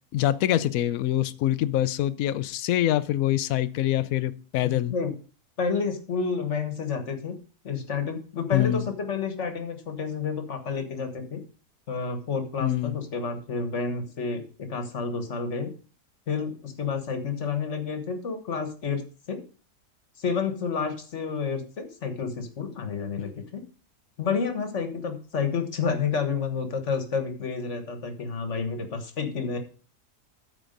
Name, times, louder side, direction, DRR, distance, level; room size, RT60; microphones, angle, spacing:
voice 1, 0.1-4.9 8.5-8.9 12.6-13.0, left 13 dB, 65° left, 1.0 m, -25 dB
voice 2, 4.6-5.1 5.6-7.4 7.6-11.4 11.9-15.7 16.3-19.4 20.2-23.6 24.2-29.6, left 5 dB, 45° left, 1.6 m, -30 dB
13.0 x 4.6 x 5.2 m
omnidirectional pair, 1.7 m